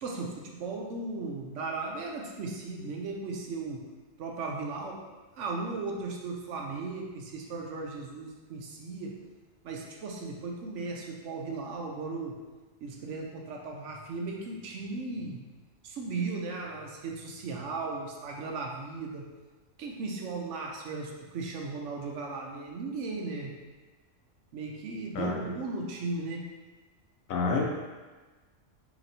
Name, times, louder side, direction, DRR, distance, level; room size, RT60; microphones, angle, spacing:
voice 1, 0.0-3.8 4.2-5.0 5.4-9.2 9.6-12.4 12.8-15.4 15.8-19.3 19.8-23.5 24.5-26.4, right 3 dB, 70° right, 0 dB, 0.9 m, -36 dB
voice 2, 27.3-27.6, left 4 dB, 80° left, 0 dB, 1.1 m, -28 dB
2.9 x 2.8 x 4.0 m, 1.3 s
omnidirectional pair, 1.4 m